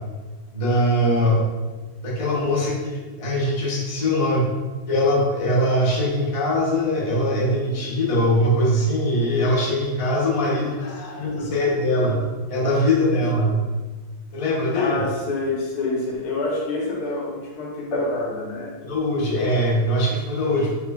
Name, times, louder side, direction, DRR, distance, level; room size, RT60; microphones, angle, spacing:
voice 1, 0.5-1.4 2.0-4.5 4.9-10.9 11.2-13.6 14.3-14.9 18.8-20.7, left 1 dB, 30° left, -4 dB, 0.7 m, -21 dB
voice 2, 10.6-12.0 14.7-18.8, left 2 dB, 80° left, -1 dB, 1.3 m, -28 dB
5.6 x 3.1 x 2.3 m, 1.3 s
omnidirectional pair, 1.6 m